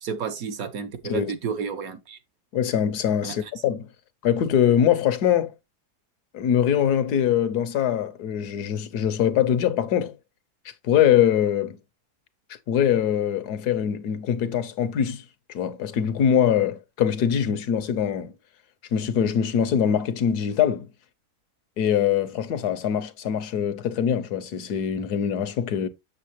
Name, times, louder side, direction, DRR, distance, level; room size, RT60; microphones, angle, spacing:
voice 1, 0.0-2.2 3.2-3.4, right 6 dB, 65° right, 1.4 m, -31 dB
voice 2, 2.5-3.9 4.2-5.5 6.3-10.2 10.8-11.8 12.7-18.3 18.9-20.9 21.8-25.9, left 9 dB, 80° left, 1.4 m, -23 dB
7.5 x 6.8 x 2.9 m
omnidirectional pair, 1.7 m